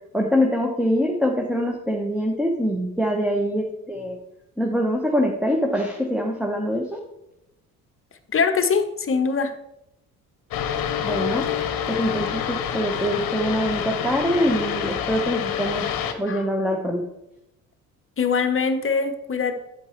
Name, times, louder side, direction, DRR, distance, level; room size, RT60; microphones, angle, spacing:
voice 1, 0.1-4.2 4.6-7.0 11.0-11.5 11.9-15.9 16.2-17.1, equal, ahead, 0 dB, 1.2 m, -24 dB
voice 2, 8.3-9.5 16.3-16.5 18.2-19.6, left 5 dB, 30° left, 8 dB, 1.1 m, -22 dB
sound 1, 10.5-16.1, left 9 dB, 50° left, 1.1 m, -27 dB
8.7 x 8.6 x 3.2 m, 0.85 s
figure-of-eight pair, 55°, 44 cm